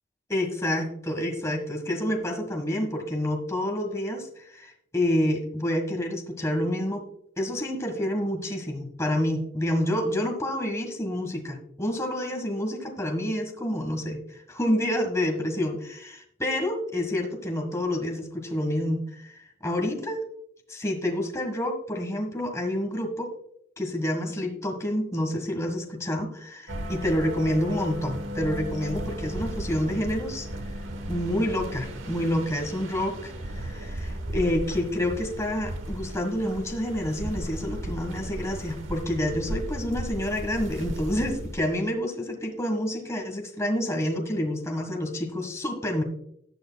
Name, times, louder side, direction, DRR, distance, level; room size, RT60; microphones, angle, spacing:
voice 1, 0.3-7.0 7.4-20.2 20.7-23.3 23.8-30.5 31.1-46.0, left 1 dB, 15° left, 2 dB, 1.5 m, -28 dB
sound 1, 26.7-41.8, right 1 dB, 80° right, 1.1 m, -35 dB
18.5 x 6.4 x 2.3 m, 0.71 s
head